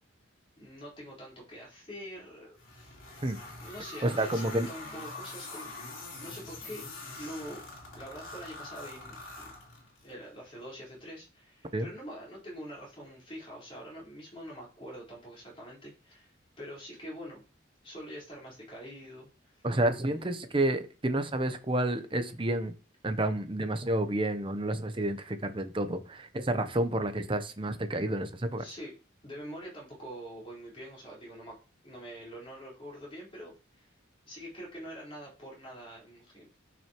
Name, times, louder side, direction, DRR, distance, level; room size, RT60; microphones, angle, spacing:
voice 1, 0.6-3.1 3.6-6.9 7.2-7.6 7.9-9.5 10.0-17.4 17.8-19.7 20.1-20.5 28.6-28.9 29.2-31.5 31.8-33.9 34.3-36.6, equal, 25° left, -5 dB, 4.2 m, -45 dB
sound 1, 2.6-10.1, left 2 dB, 75° left, 3.5 m, -44 dB
voice 2, 4.0-4.7 11.7-11.9 19.6-22.7 23.0-28.6, right 1 dB, 25° right, 9 dB, 0.7 m, -30 dB
10.5 x 6.1 x 3.0 m, 0.36 s
head